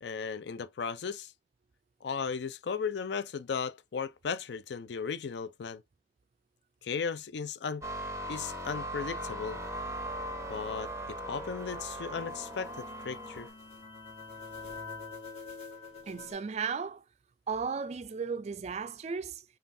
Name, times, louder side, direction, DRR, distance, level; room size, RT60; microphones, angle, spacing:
voice 1, 0.0-1.3 2.0-5.8 6.8-7.8 8.3-9.6 10.5-13.5, left 6 dB, 65° left, 0.4 m, -36 dB
sound 1, 7.8-13.5, right 1 dB, 15° right, 0.7 m, -39 dB
sound 2, 9.8-16.3, left 4 dB, 35° left, 1.6 m, -47 dB
voice 2, 16.1-17.0 17.5-19.4, right 5 dB, 35° right, 0.3 m, -35 dB
5.3 x 2.4 x 2.6 m
head